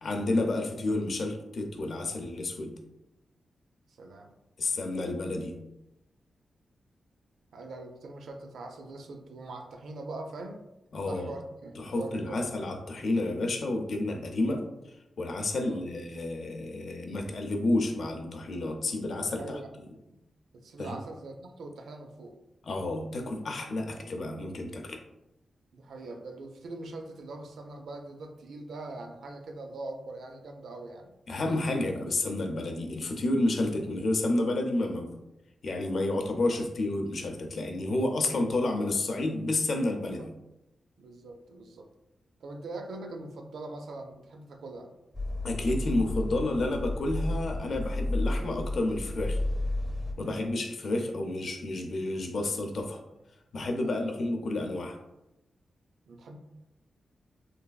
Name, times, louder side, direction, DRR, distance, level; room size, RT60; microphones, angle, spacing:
voice 1, 0.0-2.8 4.6-5.6 10.9-11.3 11.8-14.6 15.2-19.6 20.8-21.0 22.6-25.0 31.3-35.1 35.6-40.3 45.4-49.4 50.2-53.0 53.5-55.0, left 2 dB, 60° left, 3 dB, 0.4 m, -30 dB
voice 2, 4.0-4.4 7.5-10.6 11.0-12.4 15.6-15.8 19.4-19.7 20.1-20.2 20.5-22.4 25.7-31.2 40.2-40.3 41.0-41.9 42.4-44.9 50.2-50.4 53.8-54.1 56.1-56.4, right 2 dB, 90° right, 4 dB, 0.3 m, -42 dB
sound 1, 45.1-50.1, left 2 dB, 10° left, 0.6 m, -32 dB
3.2 x 2.3 x 2.2 m, 0.92 s
wide cardioid pair, 125°, 0 cm